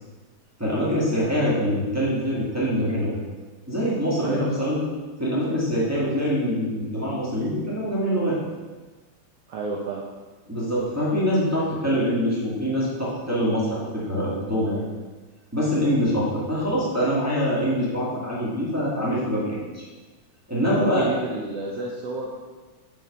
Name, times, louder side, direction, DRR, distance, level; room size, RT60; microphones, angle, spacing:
voice 1, 0.6-3.2 3.7-4.8 5.2-8.4 10.5-14.8 15.5-19.8 20.5-21.1, equal, 10° right, -8 dB, 1.0 m, -24 dB
voice 2, 4.2-4.7 9.5-10.1 20.6-22.3, right 3 dB, 75° right, -1 dB, 1.4 m, -31 dB
7.8 x 4.8 x 5.4 m, 1.3 s
omnidirectional pair, 3.6 m